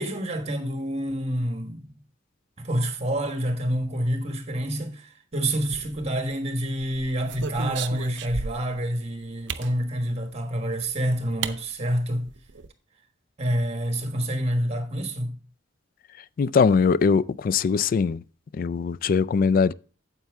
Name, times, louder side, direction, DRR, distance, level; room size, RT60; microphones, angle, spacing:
voice 1, 0.0-1.9 2.6-12.2 13.4-15.4, equal, 35° right, 1.4 m, -27 dB
sound 1, 5.6-6.3 6.8-8.8 9.5-9.7 10.8-10.9 11.4-11.6 11.9-12.0 12.3-12.7, right 5 dB, 65° right, 0.6 m, -34 dB
voice 2, 16.4-18.2 18.5-19.7, left 5 dB, 45° left, 0.3 m, -21 dB
9.0 x 8.0 x 3.5 m
head